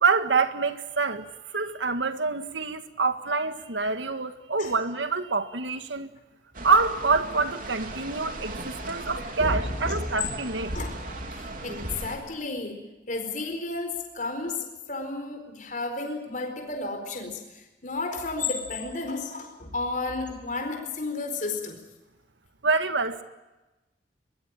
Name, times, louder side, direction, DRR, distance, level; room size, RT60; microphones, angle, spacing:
voice 1, 0.0-6.1 6.6-10.7 22.6-23.2, right 4 dB, 90° right, 1.8 m, -26 dB
sound 1, 6.5-12.2, right 2 dB, 50° right, 3.5 m, -37 dB
voice 2, 9.4-10.1 10.7-21.8, left 3 dB, 45° left, 4.4 m, -32 dB
23.5 x 21.5 x 8.9 m
head